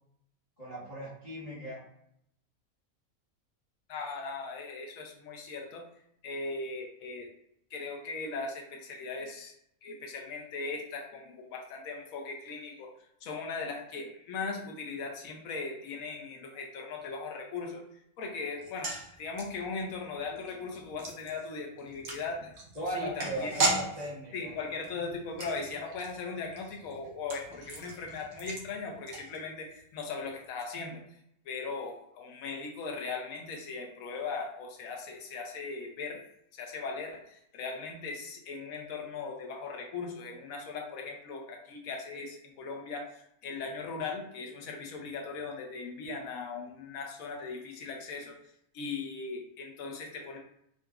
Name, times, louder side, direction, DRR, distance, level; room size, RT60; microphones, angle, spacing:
voice 1, 0.6-1.8 22.7-24.5, right 1 dB, 30° left, -10 dB, 0.9 m, -37 dB
voice 2, 3.9-5.8 6.2-7.3 7.7-9.5 9.8-12.9 13.2-17.8 18.2-22.5 22.9-23.5 24.3-31.0 31.5-36.2 36.5-48.4 48.7-50.4, left 4 dB, 70° left, 1 dB, 1.1 m, -39 dB
sound 1, 18.6-29.8 30.1-30.2 30.4-30.6, right 2 dB, 55° right, 0.9 m, -37 dB
3.8 x 2.5 x 2.3 m, 0.73 s
omnidirectional pair, 1.5 m